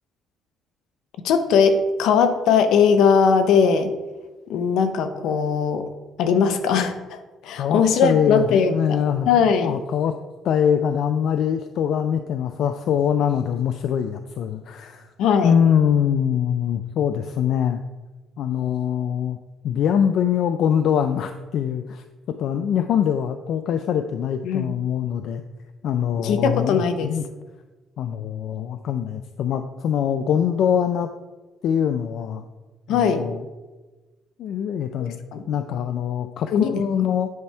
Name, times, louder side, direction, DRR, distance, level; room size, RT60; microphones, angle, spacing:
voice 1, 1.2-3.9 4.5-5.8 6.2-9.0 9.3-9.8 15.2-15.5 24.4-24.7 26.2-27.1 32.9-33.3 35.3-35.4 36.5-36.8, left 6 dB, 80° left, 8 dB, 0.7 m, -19 dB
voice 2, 7.6-9.3 9.6-10.2 10.4-15.1 15.4-17.8 18.4-19.4 19.6-22.0 22.4-25.4 25.8-27.2 28.0-31.1 31.6-32.4 32.9-33.4 34.4-35.2 35.5-37.3, left 8 dB, 60° left, 8 dB, 0.4 m, -23 dB
9.4 x 3.4 x 5.6 m, 1.2 s
cardioid pair, 155°, 0 cm